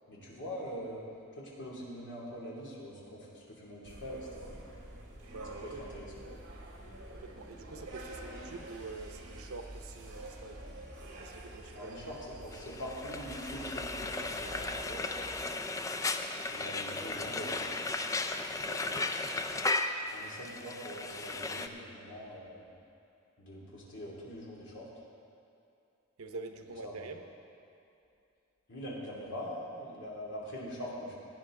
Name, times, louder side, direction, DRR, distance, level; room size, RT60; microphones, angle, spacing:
voice 1, 0.1-1.0 1.3-4.6 5.8-6.3 11.7-15.1 16.5-18.0 20.1-22.7 23.4-24.9 26.8-27.1 28.7-31.1, equal, 60° left, -5 dB, 2.7 m, -43 dB
sound 1, 3.8-15.5, right 1 dB, 60° right, 2.1 m, -47 dB
voice 2, 5.3-6.0 6.2-6.4 7.1-10.8 11.2-11.9 18.7-19.6 26.2-27.2, right 3 dB, 85° right, 6 dB, 0.8 m, -46 dB
Frying (food), 12.5-21.7, left 3 dB, 15° left, 0.4 m, -35 dB
17.0 x 9.3 x 3.8 m, 2.6 s
head